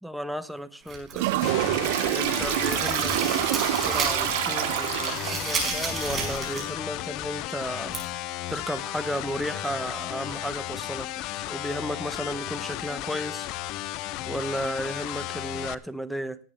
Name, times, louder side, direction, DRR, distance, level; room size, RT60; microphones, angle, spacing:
voice 1, 0.0-1.5 2.1-8.0 8.5-11.1 11.5-13.5 14.3-16.4, equal, ahead, 12 dB, 0.8 m, -34 dB
sound 1, 0.9-1.9 2.3-4.3 4.6-6.7 7.0-7.1 7.9-8.0, right 5 dB, 25° right, 5.2 m, -32 dB
Toilet flush, 1.1-5.5, right 16 dB, 60° right, 0.7 m, -26 dB
sound 2, 1.4-15.7, left 14 dB, 50° left, 0.6 m, -34 dB
17.5 x 8.6 x 3.4 m, 0.41 s
hypercardioid pair, 110°, 0 cm